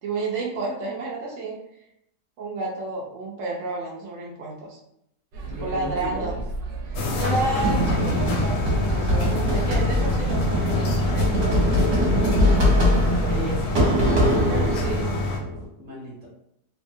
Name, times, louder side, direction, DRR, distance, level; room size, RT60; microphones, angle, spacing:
voice 1, 0.0-1.9 2.4-4.8 5.5-6.4 6.8-12.1 14.5-15.2, right 3 dB, 70° right, -4 dB, 0.7 m, -31 dB
sound 1, 5.3-15.0, right 4 dB, 90° right, 1.2 m, -35 dB
voice 2, 5.4-6.4 7.0-7.5 13.2-14.0 15.8-16.3, equal, 5° right, -7 dB, 0.8 m, -35 dB
sound 2, 6.9-15.4, left 3 dB, 70° left, 0.9 m, -27 dB
sound 3, 7.6-15.6, equal, 50° right, 1.1 m, -22 dB
2.7 x 2.4 x 2.6 m, 0.77 s
omnidirectional pair, 1.9 m